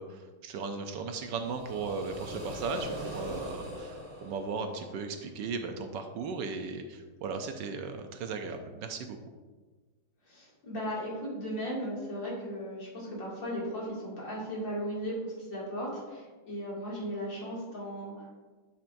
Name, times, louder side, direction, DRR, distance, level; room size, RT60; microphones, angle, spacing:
voice 1, 0.0-9.2, right 4 dB, 75° right, 6 dB, 1.2 m, -37 dB
sound 1, 1.2-5.2, equal, 20° right, 0.9 m, -41 dB
voice 2, 10.3-18.4, equal, 65° left, -6 dB, 3.2 m, -36 dB
10.0 x 5.7 x 2.6 m, 1.3 s
omnidirectional pair, 2.1 m